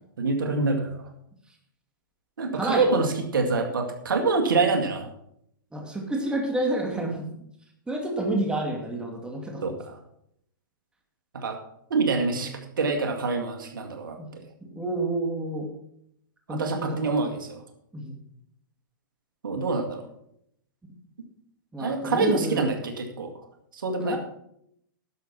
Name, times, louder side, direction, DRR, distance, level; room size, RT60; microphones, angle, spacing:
voice 1, 0.2-1.0 2.4-5.1 9.6-9.9 11.3-11.6 11.9-14.4 16.5-17.6 19.4-20.0 21.8-23.3 23.7-24.2, right 3 dB, 80° right, 4 dB, 2.2 m, -26 dB
voice 2, 2.5-2.9 5.7-7.3 7.9-9.6 14.2-14.3 14.6-15.7 16.5-17.1 17.9-18.2 20.8-20.9 21.7-22.7 24.0-24.2, right 2 dB, 10° right, 1 dB, 2.4 m, -29 dB
11.5 x 7.0 x 6.0 m, 0.73 s
hypercardioid pair, 120°, 11 cm